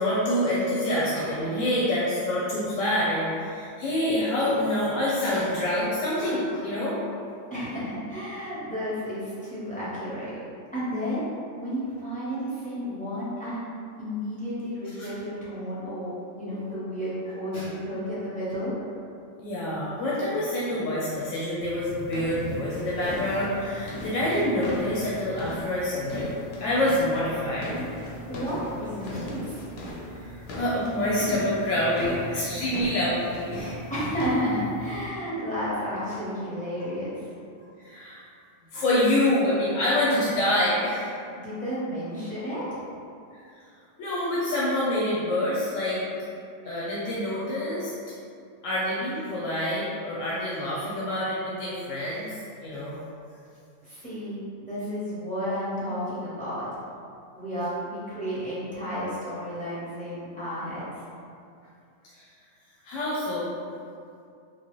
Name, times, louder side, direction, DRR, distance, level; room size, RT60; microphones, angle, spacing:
voice 1, 0.0-7.0 15.0-15.1 17.5-17.7 19.4-26.3 26.6-27.7 30.2-33.8 37.8-38.2 38.7-41.1 44.0-46.0 46.6-47.9 48.6-53.0 62.1-62.2 62.8-63.5, left 1 dB, 90° left, -8 dB, 1.0 m, -26 dB
voice 2, 7.5-10.3 10.7-11.3 11.6-13.6 14.0-18.7 28.3-29.6 33.9-37.3 41.4-42.8 53.8-56.7 57.3-60.9, equal, 10° left, -10 dB, 0.6 m, -32 dB
sound 1, 21.6-35.1, left 1 dB, 65° left, 0.7 m, -37 dB
3.1 x 2.2 x 2.9 m, 2.4 s
omnidirectional pair, 1.3 m